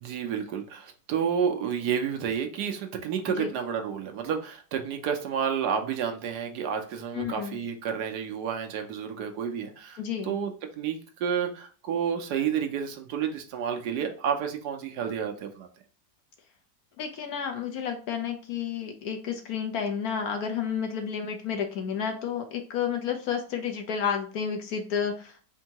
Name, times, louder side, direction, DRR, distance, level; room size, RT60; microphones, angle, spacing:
voice 1, 0.0-10.0 10.2-15.7, right 7 dB, 75° right, 4 dB, 1.2 m, -30 dB
voice 2, 7.1-7.6 10.0-10.4 17.0-25.5, left 7 dB, 65° left, 5 dB, 1.1 m, -31 dB
4.4 x 2.7 x 2.8 m, 0.40 s
omnidirectional pair, 1.9 m